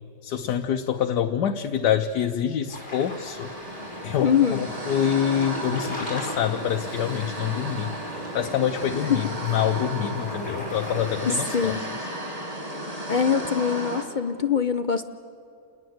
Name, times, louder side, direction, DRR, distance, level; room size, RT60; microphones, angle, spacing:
voice 1, 0.2-3.5 4.0-11.8, left 9 dB, 90° left, 5 dB, 1.4 m, -26 dB
sound 1, 2.7-11.8, left 1 dB, 35° left, 6.7 m, -40 dB
sound 2, 2.8-14.0, equal, 20° right, 2.4 m, -34 dB
voice 2, 4.2-4.6 9.1-9.2 11.3-11.8 13.1-15.0, left 7 dB, 65° left, 9 dB, 0.4 m, -23 dB
28.5 x 20.5 x 7.9 m, 2.6 s
omnidirectional pair, 1.7 m